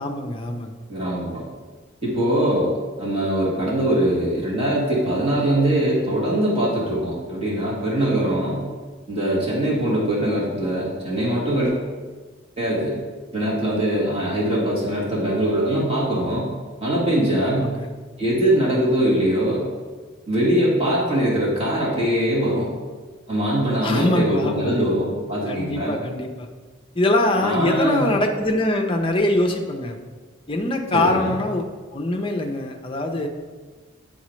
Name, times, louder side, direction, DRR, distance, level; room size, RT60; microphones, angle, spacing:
voice 1, 0.0-0.7 17.5-17.9 18.7-18.8 23.8-24.9 25.4-26.5 27.0-30.0 30.5-31.7 31.9-33.3, left 1 dB, 25° left, 3 dB, 0.5 m, -23 dB
voice 2, 0.9-1.4 2.0-2.7 3.0-8.7 9.1-11.7 12.6-13.0 13.3-16.5 16.8-17.7 18.2-19.6 20.3-22.7 23.3-26.0 27.4-28.1 30.9-31.4, right 1 dB, 30° right, -6 dB, 1.5 m, -22 dB
8.5 x 4.0 x 3.1 m, 1.4 s
head